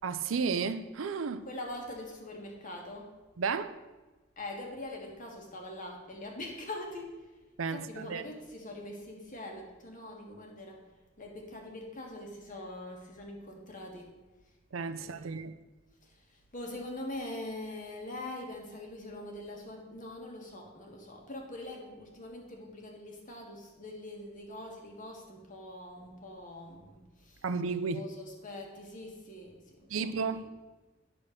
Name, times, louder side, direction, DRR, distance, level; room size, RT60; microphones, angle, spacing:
voice 1, 0.0-1.5 3.4-3.7 7.6-8.2 14.7-15.5 27.4-28.0 29.9-30.5, right 5 dB, 85° right, 0.5 m, -33 dB
voice 2, 1.4-3.1 4.4-7.1 7.7-10.8 11.2-14.2 14.9-15.4 16.5-27.4 27.9-30.5, left 1 dB, 40° left, 1.6 m, -43 dB
10.0 x 4.2 x 6.4 m
head